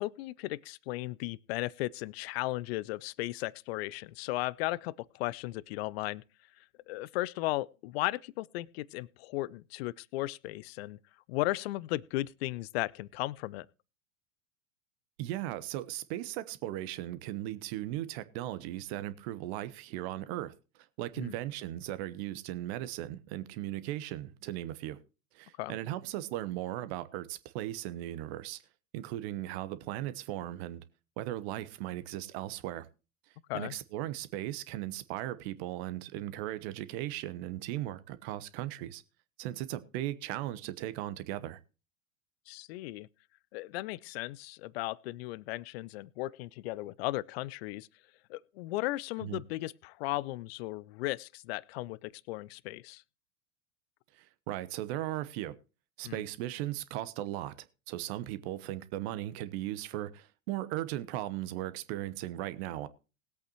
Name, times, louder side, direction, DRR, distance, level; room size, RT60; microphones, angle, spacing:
voice 1, 0.0-6.2 6.9-11.0 11.3-13.7 21.2-21.4 25.6-25.8 33.5-33.7 42.5-43.1 43.5-47.9 48.3-53.0 56.0-56.2, left 18 dB, 50° left, 0.5 m, -36 dB
voice 2, 15.2-20.5 21.0-25.0 25.3-28.6 28.9-30.8 31.2-32.9 33.5-39.0 39.4-41.6 49.2-49.4 54.5-55.5 56.0-57.5 57.9-62.9, right 14 dB, 50° right, 1.1 m, -37 dB
20.0 x 8.3 x 3.0 m
figure-of-eight pair, 90°, 41 cm